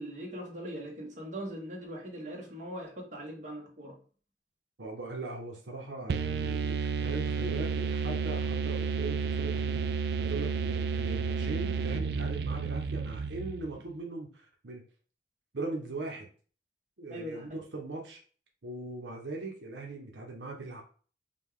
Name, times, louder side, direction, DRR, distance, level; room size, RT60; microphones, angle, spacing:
voice 1, 0.0-4.0 17.1-17.5, equal, 45° right, -1 dB, 1.2 m, -40 dB
voice 2, 4.8-9.8 10.2-14.8 15.5-16.3 17.0-18.2 18.6-20.8, right 2 dB, 85° right, 1 dB, 0.9 m, -40 dB
sound 1, 6.1-13.8, right 5 dB, 65° right, 0.3 m, -31 dB
5.1 x 2.3 x 3.6 m, 0.41 s
head